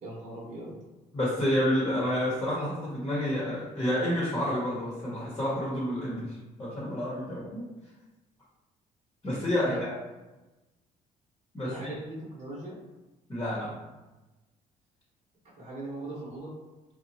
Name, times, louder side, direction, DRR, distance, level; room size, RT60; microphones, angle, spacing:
voice 1, 0.0-0.7 9.6-10.0 11.6-12.7 15.6-16.5, right 1 dB, 45° right, -6 dB, 1.0 m, -39 dB
voice 2, 1.1-7.6 9.2-9.7 11.5-12.0 13.3-13.8, left 1 dB, 25° left, -6 dB, 0.9 m, -29 dB
2.8 x 2.2 x 2.7 m, 1.1 s
cardioid pair, 85°, 17 cm